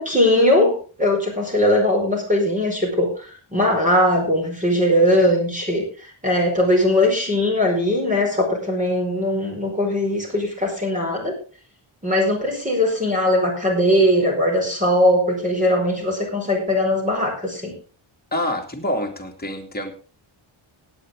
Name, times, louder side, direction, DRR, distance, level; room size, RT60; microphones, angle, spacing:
voice 1, 0.0-5.8 6.2-11.3 12.0-17.7, left 1 dB, 15° right, 4.9 m, -20 dB
voice 2, 18.3-19.9, left 1 dB, 20° left, 2.7 m, -26 dB
17.5 x 9.2 x 3.7 m
wide cardioid pair, 115°, 49 cm